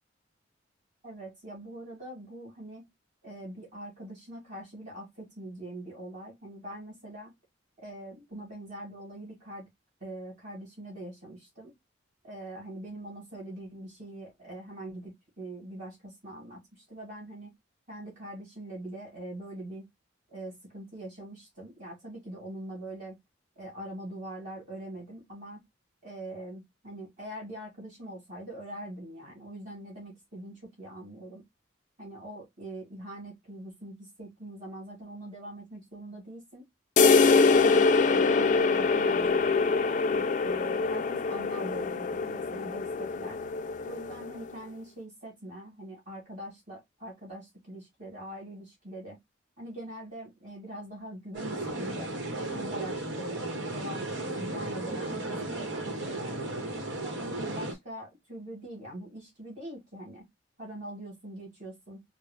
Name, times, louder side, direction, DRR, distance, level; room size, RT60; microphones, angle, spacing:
voice 1, 1.0-2.9 3.2-7.3 7.8-9.7 10.0-11.7 12.2-17.5 17.9-19.9 20.3-23.2 23.6-25.6 26.0-31.4 32.0-36.7 37.0-39.8 40.1-43.4 43.8-49.2 49.6-52.1 52.5-56.6 57.0-60.3 60.6-62.0, right 1 dB, 40° right, 2.4 m, -43 dB
sound 1, 37.0-44.5, left 4 dB, 40° left, 0.3 m, -24 dB
sound 2, 51.3-57.7, right 2 dB, 70° right, 1.1 m, -35 dB
4.6 x 2.1 x 3.4 m
head